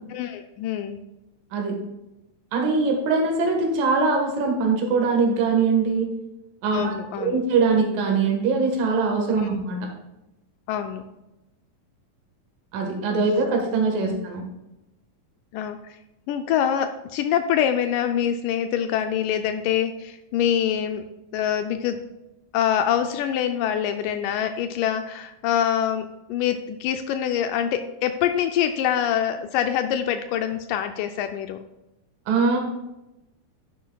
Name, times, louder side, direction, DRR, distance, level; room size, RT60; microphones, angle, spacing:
voice 1, 0.1-1.0 6.7-7.4 9.4-9.6 10.7-11.0 14.1-14.2 15.5-15.8 16.3-21.0 21.3-22.0 22.5-31.6, left 9 dB, 80° left, 8 dB, 2.1 m, -25 dB
voice 2, 2.5-6.1 6.6-9.8 12.7-14.4 32.3-32.6, right 4 dB, 80° right, 1 dB, 3.1 m, -22 dB
10.5 x 10.0 x 2.3 m, 0.95 s
omnidirectional pair, 3.8 m